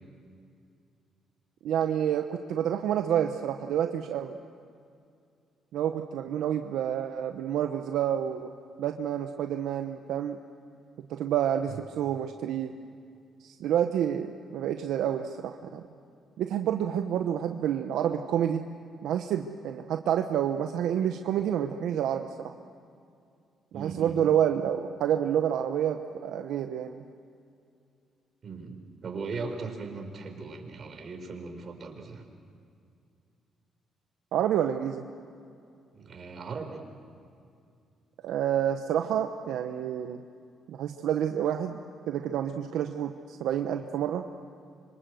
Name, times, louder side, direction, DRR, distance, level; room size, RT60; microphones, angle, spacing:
voice 1, 1.6-4.4 5.7-8.5 8.8-10.4 11.1-12.7 13.4-15.8 16.4-18.6 19.0-22.5 23.7-27.0 34.3-35.0 38.2-40.2 40.7-41.8 42.1-44.2, right 10 dB, 80° right, 6 dB, 1.0 m, -28 dB
voice 2, 23.7-24.3 28.4-32.2 35.9-36.8, right 4 dB, 50° right, 4 dB, 4.5 m, -38 dB
26.0 x 25.5 x 7.9 m, 2.4 s
cardioid pair, 90°, 0 cm